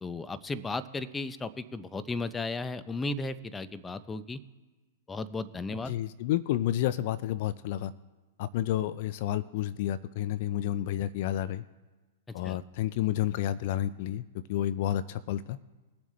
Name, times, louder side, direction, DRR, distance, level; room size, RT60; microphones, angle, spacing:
voice 1, 0.0-4.4 5.1-5.9 12.4-12.6, left 3 dB, 15° left, 13 dB, 0.6 m, -35 dB
voice 2, 5.9-7.9 8.4-11.6 12.3-14.2 14.5-15.6, left 12 dB, 55° left, 16 dB, 0.5 m, -30 dB
21.5 x 7.2 x 3.2 m, 1.2 s
hypercardioid pair, 110°, 0 cm